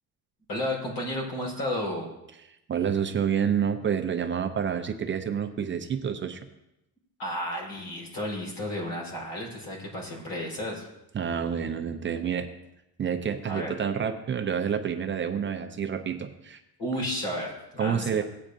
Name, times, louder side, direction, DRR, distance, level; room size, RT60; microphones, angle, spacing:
voice 1, 0.5-2.1 7.2-10.9 13.5-13.8 16.8-18.2, left 1 dB, 80° left, -1 dB, 4.4 m, -32 dB
voice 2, 2.7-6.4 11.1-12.5 13.0-16.6 17.8-18.2, right 7 dB, 30° right, 6 dB, 0.6 m, -28 dB
17.5 x 8.7 x 2.6 m, 0.89 s
cardioid pair, 160°, 40 cm